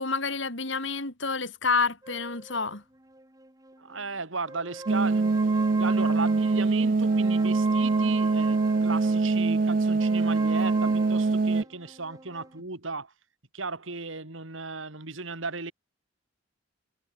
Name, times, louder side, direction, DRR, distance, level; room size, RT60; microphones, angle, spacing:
voice 1, 0.0-2.8, left 4 dB, 65° left, 4.3 m, -28 dB
sound 1, 2.0-4.1 4.4-9.3 10.0-12.6, right 3 dB, 15° right, 1.8 m, -41 dB
voice 2, 3.8-5.4 5.8-13.1 13.5-15.7, right 3 dB, 75° right, 2.8 m, -35 dB
sound 2, 4.9-11.6, right 3 dB, 45° right, 0.4 m, -24 dB
head